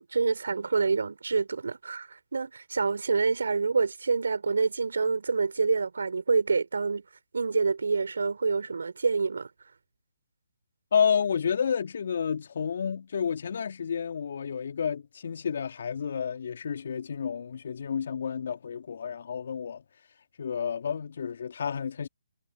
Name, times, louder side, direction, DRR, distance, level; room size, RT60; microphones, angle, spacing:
voice 1, 0.0-7.0 7.3-9.5, right 4 dB, 75° right, 4.8 m, -27 dB
voice 2, 10.9-19.8 20.4-22.1, left 7 dB, 60° left, 2.7 m, -30 dB
figure-of-eight pair, 145°, 0 cm